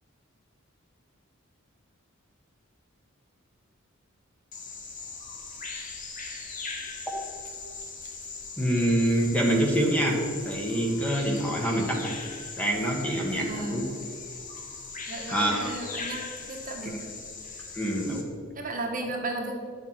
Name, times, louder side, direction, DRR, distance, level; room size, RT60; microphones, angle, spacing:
Bird vocalization bird call bird song, 4.5-18.2, left 4 dB, 40° left, 1.4 m, -40 dB
voice 1, 8.6-12.1 12.6-13.8 15.3-15.7 17.7-18.2, right 1 dB, 5° left, 0 dB, 1.5 m, -26 dB
voice 2, 13.4-13.9 15.1-17.1 18.5-19.5, right 2 dB, 40° right, 1 dB, 1.4 m, -34 dB
10.5 x 7.2 x 5.8 m, 2.2 s
head